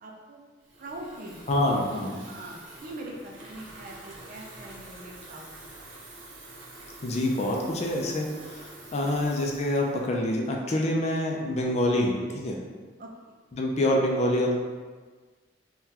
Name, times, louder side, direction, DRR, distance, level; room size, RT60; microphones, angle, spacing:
voice 1, 0.0-0.4 0.8-1.6 2.0-5.9 9.0-9.4 13.0-13.1, right 1 dB, 50° right, 0 dB, 0.4 m, -43 dB
Water tap faucet / Fill (with liquid), 0.6-10.9, right 2 dB, 85° right, 0.7 m, -47 dB
voice 2, 1.5-2.2 7.0-12.6 13.5-14.5, left 1 dB, 40° left, 0 dB, 0.4 m, -26 dB
3.7 x 2.3 x 2.8 m, 1.4 s
head